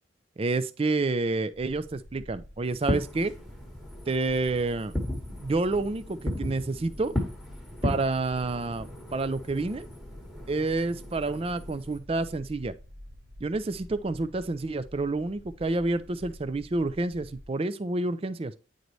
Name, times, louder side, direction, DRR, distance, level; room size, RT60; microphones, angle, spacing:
voice 1, 0.4-3.3 4.1-4.9 5.4-7.2 7.8-9.9 10.5-12.7 13.4-18.5, right 3 dB, 30° right, 0.4 m, -29 dB
sound 1, 1.5-17.5, left 1 dB, 75° right, 2.3 m, -48 dB
Fireworks, 2.7-12.0, left 1 dB, ahead, 1.2 m, -36 dB
9.4 x 4.0 x 3.1 m
head